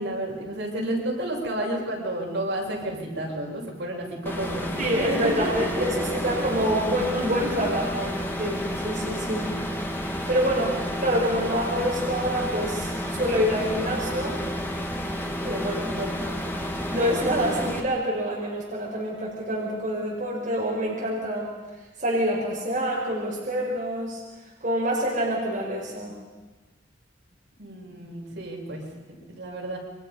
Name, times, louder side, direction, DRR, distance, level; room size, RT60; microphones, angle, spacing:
voice 1, 0.0-5.5 5.8-6.2 8.0-8.2 15.7-16.1 27.6-29.8, right 1 dB, 70° right, -2 dB, 7.0 m, -32 dB
sound 1, 4.3-17.8, equal, 10° left, 2.0 m, -31 dB
voice 2, 4.8-6.0 6.2-9.5 10.3-14.4 15.4-16.5 16.9-21.5 22.0-24.2 24.6-26.1, equal, 45° right, -4 dB, 5.2 m, -27 dB
28.5 x 25.0 x 5.5 m, 1.2 s
head